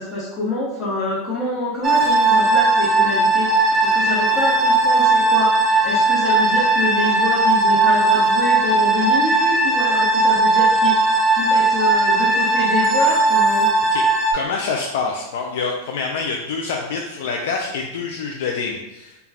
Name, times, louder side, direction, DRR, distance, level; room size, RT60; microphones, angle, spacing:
voice 1, 0.0-3.5 3.8-13.7, left 2 dB, 20° left, -9 dB, 0.8 m, -26 dB
sound 1, 1.8-14.3, right 2 dB, 25° right, 0.4 m, -17 dB
voice 2, 14.3-19.2, left 4 dB, 75° left, 1 dB, 0.3 m, -26 dB
2.3 x 2.2 x 3.3 m, 0.97 s
supercardioid pair, 130°, 0 cm